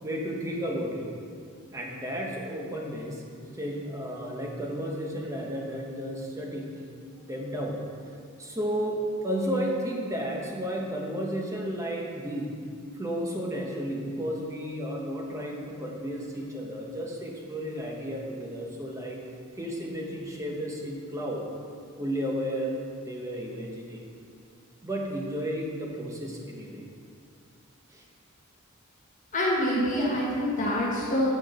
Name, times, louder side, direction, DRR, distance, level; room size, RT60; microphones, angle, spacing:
voice 1, 0.0-1.1 1.7-3.2 3.5-6.7 7.2-7.8 8.4-12.5 12.9-19.2 19.6-21.4 22.0-22.7 23.0-24.0 24.8-26.8 27.9-28.0, equal, 15° right, -1 dB, 1.1 m, -33 dB
voice 2, 29.3-31.3, left 1 dB, 35° left, -6 dB, 1.5 m, -26 dB
8.9 x 6.1 x 4.9 m, 2.3 s
head